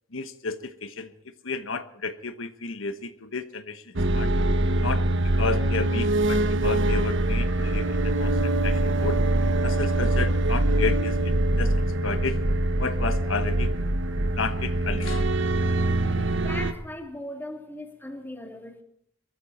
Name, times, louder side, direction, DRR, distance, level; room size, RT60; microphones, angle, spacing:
voice 1, 0.1-1.1 1.4-4.3 4.8-5.0 5.3-9.2 9.6-11.7 12.0-12.4 12.8-13.7 14.3-15.2, left 3 dB, 80° left, 1.2 m, -32 dB
sound 1, 4.0-16.7, right 1 dB, 65° right, 1.2 m, -24 dB
voice 2, 16.4-18.8, left 1 dB, 10° left, 2.8 m, -38 dB
23.0 x 14.0 x 4.4 m
head